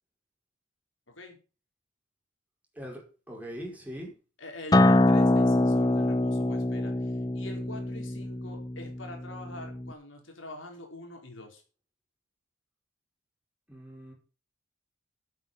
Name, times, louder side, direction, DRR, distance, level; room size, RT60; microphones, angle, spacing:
voice 1, 3.3-4.1 13.7-14.1, equal, 10° right, -1 dB, 4.8 m, -40 dB
voice 2, 4.4-11.6, left 1 dB, 75° left, 3 dB, 4.2 m, -44 dB
Acoustic guitar, 4.7-9.9, left 1 dB, 20° left, 0.6 m, -24 dB
9.6 x 8.4 x 7.2 m, 0.36 s
head